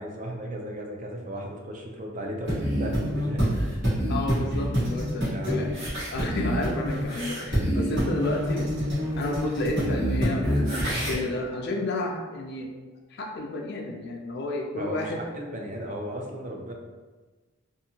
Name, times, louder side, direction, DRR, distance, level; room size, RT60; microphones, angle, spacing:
voice 1, 0.0-3.6 5.3-5.7 14.8-16.7, right 1 dB, 35° right, 1 dB, 0.4 m, -35 dB
sound 1, 2.5-11.2, equal, 55° right, 1.2 m, -27 dB
voice 2, 4.1-5.7 6.1-8.7 9.2-12.7 13.1-15.2, left 2 dB, 50° left, 1 dB, 0.3 m, -31 dB
2.7 x 2.5 x 2.7 m, 1.3 s
head